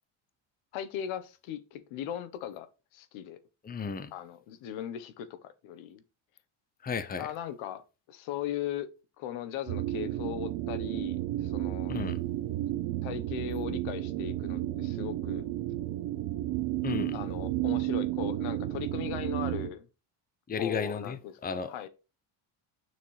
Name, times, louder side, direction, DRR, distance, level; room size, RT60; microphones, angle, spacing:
voice 1, 0.7-3.4 4.1-6.0 7.2-7.8 8.1-8.9 9.2-12.0 13.0-15.4 17.1-19.9 20.6-21.9, left 10 dB, 75° left, 1.3 m, -38 dB
voice 2, 3.6-4.1 6.8-7.3 11.9-12.2 16.8-17.2 20.5-21.8, left 5 dB, 20° left, 0.8 m, -34 dB
sound 1, 9.7-19.7, right 15 dB, 75° right, 0.9 m, -32 dB
7.2 x 6.4 x 3.4 m
cardioid pair, 115°, 48 cm